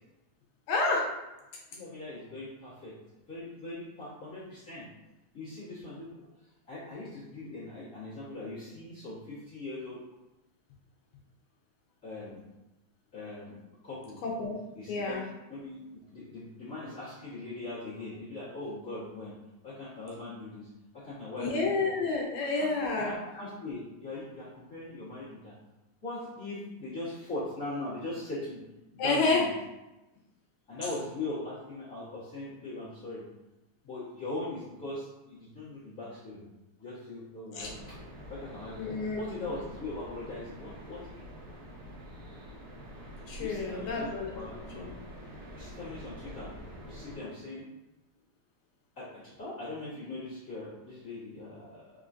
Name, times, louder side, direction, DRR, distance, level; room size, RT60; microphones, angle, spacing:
voice 1, 0.7-1.1 14.2-14.6 14.9-15.2 21.4-23.1 29.0-29.4 37.6-37.7 38.8-39.2 43.3-44.4 44.8-44.9 51.6-51.7, left 3 dB, 75° left, -1 dB, 1.9 m, -29 dB
voice 2, 1.7-2.9 3.3-4.9 5.3-10.0 12.0-12.4 13.1-13.6 13.8-14.2 14.7-15.2 15.5-15.8 16.1-19.3 19.6-20.7 20.9-21.6 22.4-22.7 22.9-25.5 26.0-28.6 28.9-29.5 30.7-33.2 33.8-36.4 36.8-38.0 38.3-41.2 43.4-44.9 45.5-46.5 46.8-47.7 48.9-51.9, left 2 dB, 35° left, -11 dB, 1.3 m, -40 dB
sound 1, 37.6-47.2, equal, 50° right, 1.1 m, -46 dB
4.9 x 3.7 x 2.6 m, 1.0 s
omnidirectional pair, 3.4 m